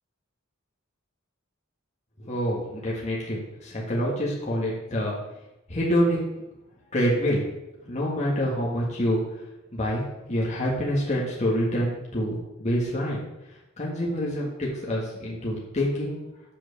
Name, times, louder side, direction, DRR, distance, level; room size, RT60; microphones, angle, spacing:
voice 1, 2.2-5.1 5.7-6.2 6.9-7.4 7.9-9.2 9.7-10.0 10.3-13.2 13.8-16.2, equal, 35° left, -5 dB, 1.7 m, -26 dB
7.5 x 5.1 x 6.6 m, 0.96 s
head